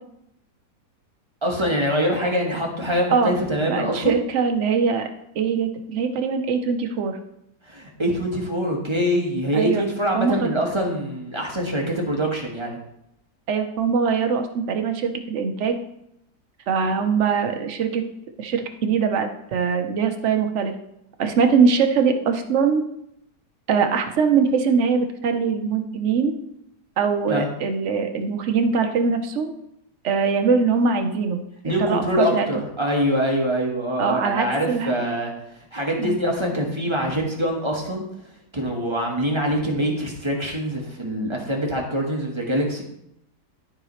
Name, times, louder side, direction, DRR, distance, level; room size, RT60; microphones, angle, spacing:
voice 1, 1.4-4.1 7.7-12.8 27.3-27.5 31.6-35.3 35.7-38.1 38.5-42.8, equal, 20° right, -1 dB, 1.3 m, -24 dB
voice 2, 3.7-5.0 5.3-7.2 9.5-9.8 10.1-10.5 13.5-15.8 16.7-18.0 18.4-20.7 21.2-22.8 23.7-26.3 27.0-29.5 30.0-31.4 31.8-32.6 34.0-34.9 36.0-36.1, right 5 dB, 50° right, 5 dB, 1.0 m, -22 dB
12.5 x 4.9 x 3.2 m, 0.79 s
omnidirectional pair, 1.8 m